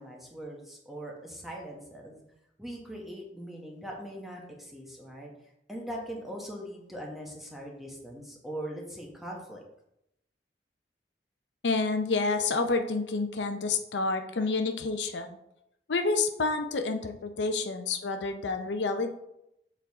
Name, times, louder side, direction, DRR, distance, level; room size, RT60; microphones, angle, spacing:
voice 1, 0.0-2.2 2.6-5.3 5.7-9.6, right 1 dB, ahead, -2 dB, 1.2 m, -41 dB
voice 2, 11.6-15.3 15.9-19.2, left 3 dB, 85° left, 6 dB, 0.6 m, -29 dB
6.9 x 4.6 x 3.5 m, 0.81 s
head